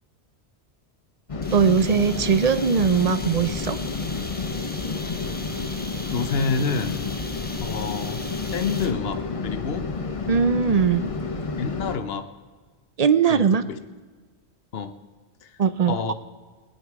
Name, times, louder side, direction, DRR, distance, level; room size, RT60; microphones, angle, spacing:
sound 1, 1.3-12.0, left 4 dB, 35° left, 0.8 m, -30 dB
sound 2, 1.4-9.1, left 1 dB, 10° left, 1.1 m, -40 dB
voice 1, 1.5-3.8 10.3-11.1 13.0-13.7 15.6-16.1, right 6 dB, 45° right, 12 dB, 0.5 m, -20 dB
voice 2, 6.1-7.2 7.6-8.2 8.5-9.9 11.6-12.3 13.3-13.8 14.7-14.9 15.4-15.5 15.9-16.1, left 5 dB, 65° left, 9 dB, 1.1 m, -28 dB
20.5 x 10.0 x 4.7 m, 1.4 s
omnidirectional pair, 1.1 m